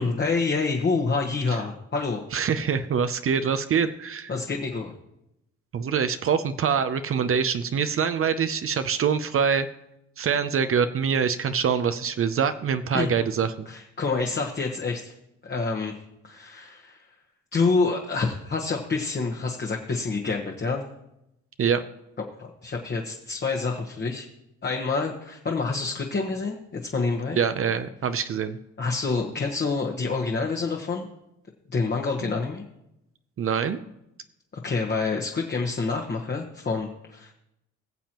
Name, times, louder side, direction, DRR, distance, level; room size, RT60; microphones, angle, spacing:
voice 1, 0.0-2.2 4.3-4.9 12.9-13.1 13.7-15.1 15.4-16.0 16.2-17.0 17.5-20.9 22.4-24.3 24.6-27.4 28.8-31.1 31.7-32.6 34.6-37.3, left 4 dB, 35° left, 1 dB, 1.3 m, -27 dB
voice 2, 2.3-4.3 5.7-9.7 10.2-13.7 21.6-21.8 27.4-28.6 32.2-32.3 33.4-33.8, right 7 dB, 45° right, 10 dB, 0.6 m, -25 dB
21.0 x 7.2 x 3.0 m, 0.85 s
cardioid pair, 90°, 30 cm